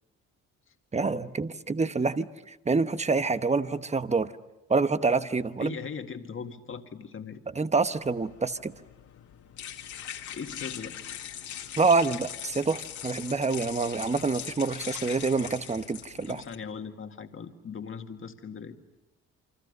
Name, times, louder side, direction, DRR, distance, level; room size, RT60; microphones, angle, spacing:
voice 1, 0.9-4.3 4.7-5.7 7.5-8.7 11.8-16.4, right 4 dB, 20° right, 11 dB, 1.1 m, -27 dB
voice 2, 5.6-7.4 10.3-11.0 16.3-18.8, left 6 dB, 45° left, 5 dB, 2.0 m, -39 dB
sound 1, 8.0-16.5, left 9 dB, 75° left, 2.2 m, -41 dB
29.0 x 24.5 x 6.7 m, 1.0 s
cardioid pair, 90°, 30 cm